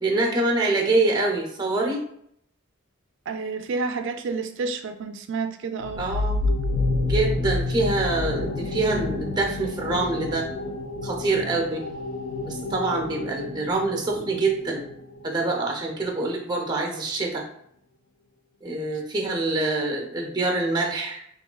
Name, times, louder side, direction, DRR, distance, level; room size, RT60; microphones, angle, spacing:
voice 1, 0.0-2.0 6.0-6.4 7.0-10.5 11.0-11.8 12.4-14.8 15.2-17.4 18.6-21.2, right 2 dB, 20° right, 1 dB, 0.6 m, -25 dB
voice 2, 3.3-6.0 11.4-11.6, right 4 dB, 60° right, 8 dB, 0.3 m, -30 dB
sound 1, 5.8-15.2, left 2 dB, 75° left, 0.4 m, -29 dB
3.5 x 2.9 x 2.2 m, 0.70 s
head